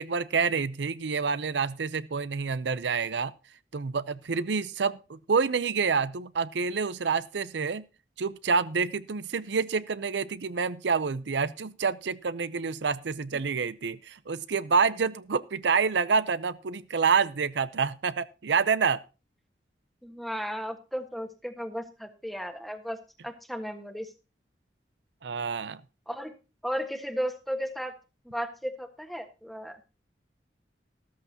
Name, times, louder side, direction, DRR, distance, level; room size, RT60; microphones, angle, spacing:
voice 1, 0.0-3.3 3.7-7.9 8.2-19.0 25.2-25.8, right 5 dB, 75° right, 16 dB, 0.6 m, -28 dB
voice 2, 20.0-23.0 23.2-24.1 26.1-26.3 26.6-27.9 28.2-29.9, equal, ahead, 7 dB, 1.4 m, -35 dB
13.5 x 13.5 x 2.8 m, 0.30 s
head